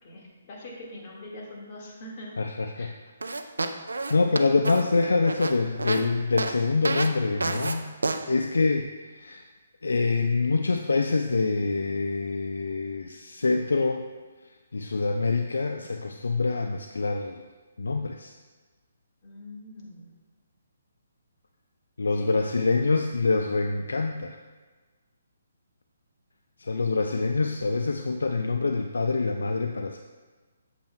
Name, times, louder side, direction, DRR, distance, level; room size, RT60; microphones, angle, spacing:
voice 1, 0.0-2.3 2.7-2.9 19.2-20.1 22.1-22.5, left 1 dB, 35° left, -3 dB, 1.7 m, -43 dB
voice 2, 2.4-2.9 4.1-7.9 8.3-8.9 9.1-9.4 9.8-14.0 14.7-17.4 17.8-18.3 22.0-24.4 26.6-30.0, left 3 dB, 65° left, 5 dB, 0.4 m, -25 dB
sound 1, 3.2-6.0 6.4-6.5 6.8-7.1 7.4-7.7 8.0-8.2, right 3 dB, 70° right, 0.5 m, -29 dB
8.4 x 7.6 x 2.2 m, 1.3 s
figure-of-eight pair, 135°, 0 cm